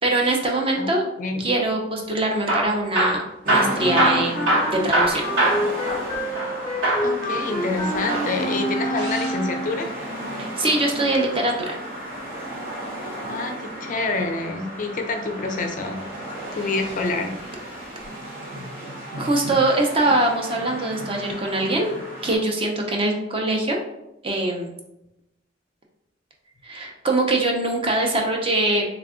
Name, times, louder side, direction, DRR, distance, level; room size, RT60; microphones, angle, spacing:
voice 1, 0.0-1.0 1.4-3.2 3.4-5.3 10.4-11.8 19.2-21.9 22.2-23.8 24.2-24.7 26.6-28.8, right 2 dB, 30° right, 0 dB, 0.6 m, -23 dB
Hammer / Drill, 2.3-6.6 6.8-7.1 8.0-9.4 11.1-12.4 14.1-14.5 15.3-16.1 16.8-17.0 17.3-17.4 18.0-18.1, right 1 dB, 80° right, 1.2 m, -24 dB
sound 1, 3.4-22.4, right 1 dB, 50° right, 1.0 m, -34 dB
Wind instrument woodwind instrument, 3.8-9.8, equal, 20° left, 0.7 m, -28 dB
voice 2, 7.0-9.9 13.2-16.0 16.6-17.7, left 3 dB, 45° left, 5 dB, 0.4 m, -27 dB
3.3 x 2.3 x 3.6 m, 0.86 s
head